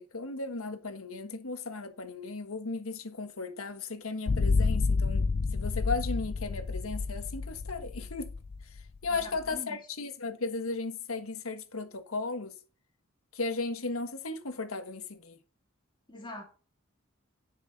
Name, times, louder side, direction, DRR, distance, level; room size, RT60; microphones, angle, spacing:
voice 1, 0.0-5.2 5.5-8.3 9.0-12.5 13.3-15.4, left 3 dB, 85° left, 1.5 m, -35 dB
sound 1, 4.3-9.5, left 4 dB, 50° left, 0.4 m, -29 dB
voice 2, 9.0-9.8 16.1-16.4, left 1 dB, 25° left, 3.1 m, -44 dB
10.0 x 6.5 x 4.1 m
head